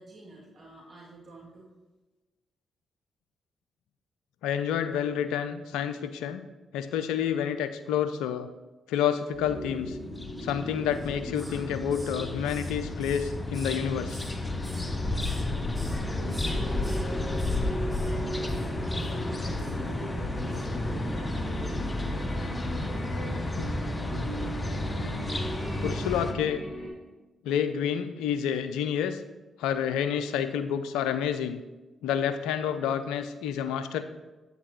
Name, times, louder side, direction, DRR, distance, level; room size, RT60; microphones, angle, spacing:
voice 1, 0.0-1.7 15.9-18.5 18.8-21.8, right 2 dB, 55° right, -5 dB, 2.5 m, -48 dB
voice 2, 4.4-6.4 6.7-8.5 8.9-10.0 10.4-14.2 23.6-23.7 25.8-26.6 27.4-29.2 29.6-31.6 32.0-34.0, left 8 dB, 80° left, 11 dB, 0.4 m, -29 dB
sound 1, 9.3-26.9, equal, 55° left, 2.5 m, -38 dB
sound 2, 9.8-26.3, left 2 dB, 25° left, 0.8 m, -32 dB
Hiss, 10.9-11.7 11.9-14.4 14.6-15.5 15.7-16.0 16.3-17.1 17.4-17.6 17.9-18.1 18.5-18.7 19.0-19.1, right 1 dB, ahead, 2.1 m, -49 dB
8.4 x 8.1 x 3.1 m, 1.1 s
hypercardioid pair, 40°, 0 cm